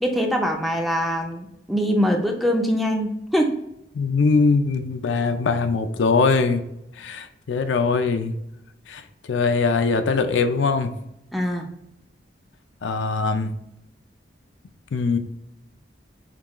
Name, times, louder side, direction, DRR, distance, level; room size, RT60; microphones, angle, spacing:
voice 1, 0.0-3.5 11.3-11.7, equal, ahead, 1 dB, 0.5 m, -23 dB
voice 2, 3.9-6.6 7.0-8.3 8.9-9.0 9.3-10.9 12.8-13.5 14.9-15.2, left 4 dB, 75° left, 8 dB, 0.4 m, -21 dB
5.9 x 2.3 x 3.0 m, 0.82 s
head